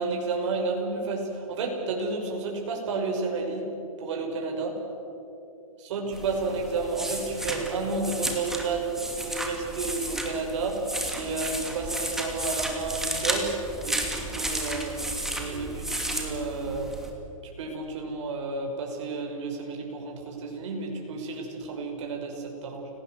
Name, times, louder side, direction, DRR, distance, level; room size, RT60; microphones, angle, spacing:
voice 1, 0.0-3.7 4.0-4.8 5.9-8.9 9.2-15.0 15.3-16.9 17.6-22.9, right 3 dB, 55° right, 1 dB, 6.1 m, -31 dB
sound 1, 6.1-17.1, right 1 dB, ahead, 2.6 m, -33 dB
29.5 x 19.0 x 8.0 m, 2.8 s
hypercardioid pair, 145°, 18 cm